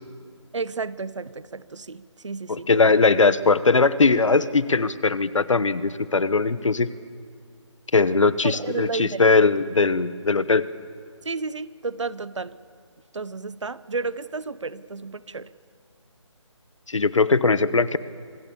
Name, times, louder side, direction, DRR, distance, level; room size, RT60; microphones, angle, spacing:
voice 1, 0.5-2.7 8.4-9.2 11.2-12.6 13.1-15.5, right 4 dB, 70° right, 17 dB, 0.9 m, -32 dB
voice 2, 2.5-6.9 7.9-10.6 16.9-18.0, left 4 dB, 75° left, 16 dB, 1.1 m, -20 dB
25.5 x 19.0 x 7.2 m, 2.2 s
figure-of-eight pair, 155°, 16 cm